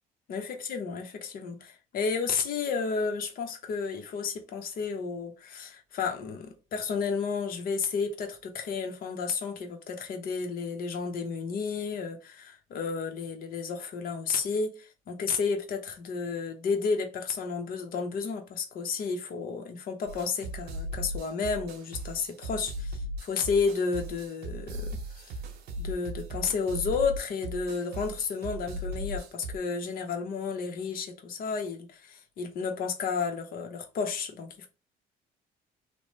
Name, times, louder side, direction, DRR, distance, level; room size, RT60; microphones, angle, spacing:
voice 1, 0.3-25.3 25.8-34.7, left 5 dB, 60° left, 0.8 m, -32 dB
sound 1, 20.1-29.6, right 1 dB, 75° right, 0.7 m, -37 dB
2.9 x 2.0 x 3.1 m
cardioid pair, 110°, 17 cm